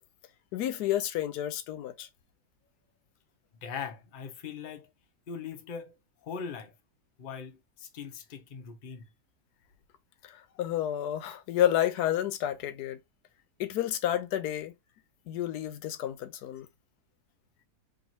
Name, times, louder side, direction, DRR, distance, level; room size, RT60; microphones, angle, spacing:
voice 1, 0.5-2.1 10.3-13.0 13.6-14.7 15.3-16.7, left 11 dB, 80° left, 1.1 m, -30 dB
voice 2, 3.6-4.9 5.3-6.0 6.2-6.7 7.2-9.1 10.5-10.6, left 6 dB, 45° left, 0.7 m, -40 dB
3.0 x 2.9 x 4.0 m
omnidirectional pair, 1.7 m